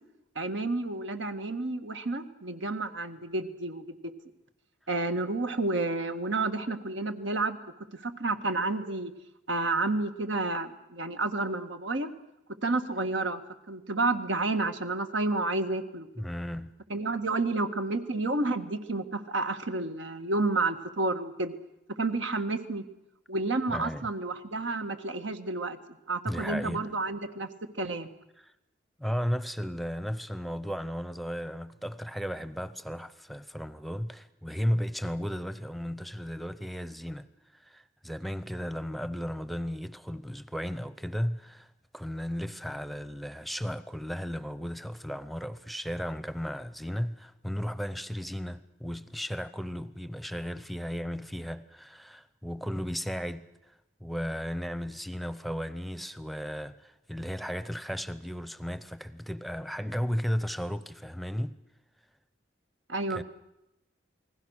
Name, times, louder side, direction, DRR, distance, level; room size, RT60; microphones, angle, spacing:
voice 1, 0.4-4.1 4.9-7.6 7.9-9.1 9.5-12.1 12.6-13.4 13.7-16.1 16.9-21.5 21.9-22.8 23.3-25.8 26.1-27.5 27.8-28.1 62.9-63.2, right 2 dB, 80° right, 1.7 m, -30 dB
voice 2, 16.2-16.7 23.7-24.0 26.3-26.9 28.4-28.5 29.0-37.3 37.5-61.6 63.1-63.2, equal, ahead, 0.7 m, -35 dB
28.5 x 20.0 x 6.5 m
head